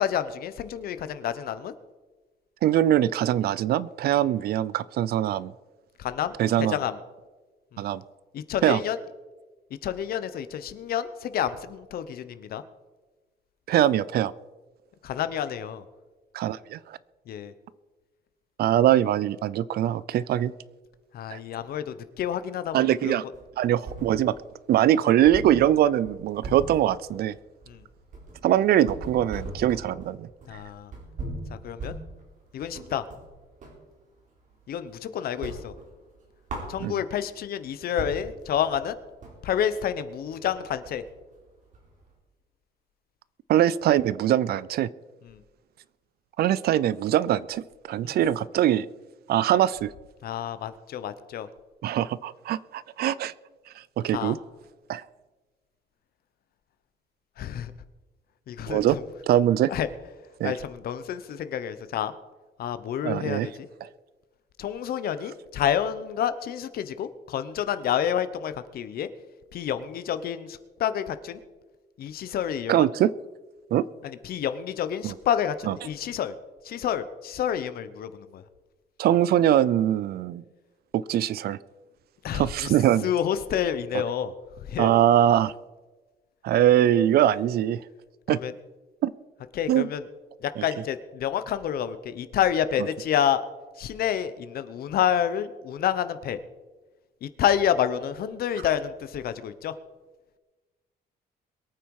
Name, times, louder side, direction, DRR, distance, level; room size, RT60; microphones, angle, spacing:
voice 1, 0.0-1.7 6.0-6.3 6.6-7.0 7.7-7.9 8.3-9.0 9.8-12.6 15.0-15.8 17.3-17.5 21.1-23.1 27.7-27.8 30.5-30.9 31.5-31.9 32.5-33.0 34.7-35.7 36.7-39.0 39.4-41.0 48.0-48.2 50.2-51.5 54.1-54.4 57.4-57.7 58.5-59.0 59.7-59.9 60.4-62.1 62.6-63.5 64.6-69.1 69.5-71.4 72.0-72.9 74.0-76.3 76.6-78.4 82.2-82.7 83.0-84.3 84.6-84.9 88.3-88.5 89.5-90.0 90.4-93.4 93.8-96.4 97.2-99.7, left 9 dB, 60° left, 12 dB, 1.0 m, -29 dB
voice 2, 2.6-5.5 6.4-6.8 7.8-8.0 8.6-8.8 13.7-14.3 16.3-17.0 18.6-20.5 21.3-21.4 22.7-23.2 23.6-24.3 24.7-27.3 28.4-30.3 36.8-37.0 43.5-44.9 46.4-48.9 49.3-49.9 51.8-53.3 54.0-54.4 54.9-55.0 58.7-59.0 59.3-59.7 60.4-60.5 63.0-63.5 63.8-63.9 72.7-73.1 73.7-73.9 75.0-75.1 75.7-75.8 79.0-80.4 80.9-81.6 82.3-83.1 84.8-85.5 86.4-87.8 88.3-88.4 89.0-89.1 89.7-89.9 90.6-90.7, right 11 dB, 60° right, 19 dB, 0.5 m, -22 dB
sound 1, 23.3-24.5 24.8-24.9 25.2-33.8 34.2-35.0 35.3-37.3 37.7-37.8 38.0-42.1, right 2 dB, 45° right, 3.8 m, -40 dB
22.0 x 9.0 x 4.8 m, 1.2 s
cardioid pair, 170°, 18 cm